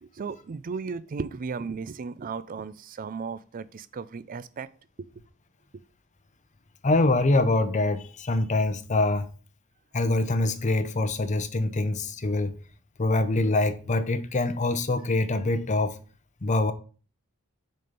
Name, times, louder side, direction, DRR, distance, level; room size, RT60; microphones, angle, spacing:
voice 1, 0.0-4.7 5.0-5.1, right 5 dB, 40° right, 0.4 m, -35 dB
voice 2, 6.8-9.3 9.9-12.6 13.0-16.0 16.4-16.7, left 2 dB, 35° left, 0.7 m, -24 dB
6.4 x 4.3 x 5.2 m
head